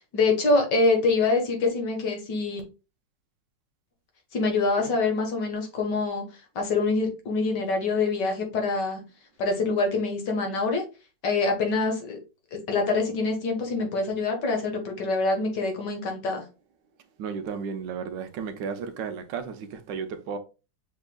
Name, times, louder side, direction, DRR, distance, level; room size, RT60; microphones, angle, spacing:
voice 1, 0.0-2.6 4.3-6.2 6.6-9.0 9.4-10.8 11.2-12.2 12.7-16.4, left 3 dB, 70° left, 1.9 m, -25 dB
voice 2, 17.2-20.4, right 6 dB, 80° right, 1.4 m, -33 dB
6.2 x 3.7 x 2.2 m
omnidirectional pair, 1.9 m